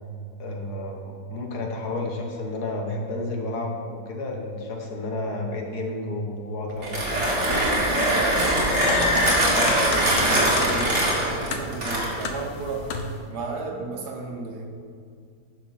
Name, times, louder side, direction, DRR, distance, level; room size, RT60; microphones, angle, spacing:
voice 1, 0.4-7.3, left 2 dB, 65° left, 1 dB, 1.7 m, -31 dB
Mechanisms, 6.7-12.4, right 1 dB, 55° right, 2.5 m, -22 dB
voice 2, 8.0-12.9 13.3-14.7, right 3 dB, 70° right, 2 dB, 1.7 m, -33 dB
sound 1, 8.3-13.2, left 4 dB, 85° left, 1.4 m, -31 dB
10.5 x 6.2 x 5.8 m, 2.3 s
omnidirectional pair, 1.8 m